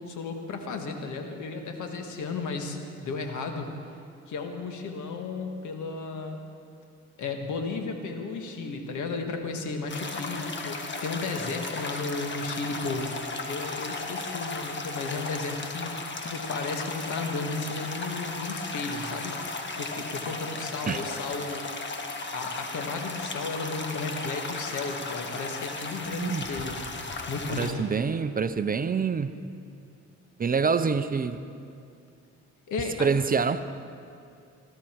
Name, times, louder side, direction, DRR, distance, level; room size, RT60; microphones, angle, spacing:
voice 1, 0.0-3.7 4.3-6.4 7.2-13.1 13.4-15.9 16.2-19.4 19.8-21.6 22.3-26.8 27.3-27.9 32.7-33.1, left 3 dB, 75° left, 1.8 m, -34 dB
sound 1, 9.9-27.7, left 3 dB, 40° left, 1.5 m, -35 dB
voice 2, 27.6-29.3 30.4-31.4 33.0-33.6, right 5 dB, 30° right, 0.6 m, -26 dB
19.5 x 14.5 x 4.6 m
cardioid pair, 90°, 30 cm